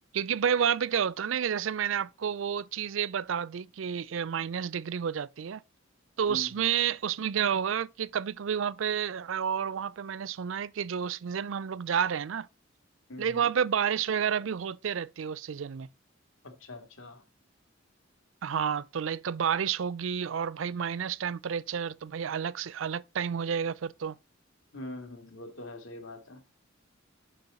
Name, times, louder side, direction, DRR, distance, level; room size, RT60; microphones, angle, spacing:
voice 1, 0.1-5.6 6.2-12.5 13.2-15.9 18.4-24.2, right 8 dB, 75° right, 0.4 m, -30 dB
voice 2, 6.3-6.7 13.1-13.5 16.4-17.2 24.7-26.4, left 1 dB, 80° left, 2.2 m, -43 dB
6.7 x 5.3 x 6.9 m
head